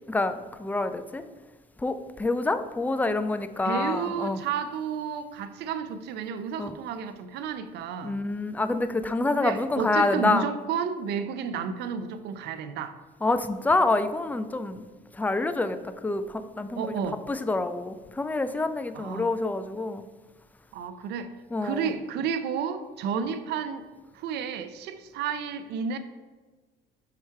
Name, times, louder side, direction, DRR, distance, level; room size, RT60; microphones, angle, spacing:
voice 1, 0.1-1.2 1.8-4.4 6.6-6.7 8.0-10.5 13.2-14.8 15.1-20.0 21.5-21.9 23.2-23.3, left 2 dB, 10° left, 10 dB, 0.4 m, -27 dB
voice 2, 3.6-8.2 9.3-12.9 16.8-17.2 18.9-19.3 20.7-21.3 21.6-23.9 24.1-26.0, right 7 dB, 80° right, 10 dB, 0.5 m, -31 dB
5.8 x 4.8 x 4.5 m, 1.3 s
cardioid pair, 110°, 17 cm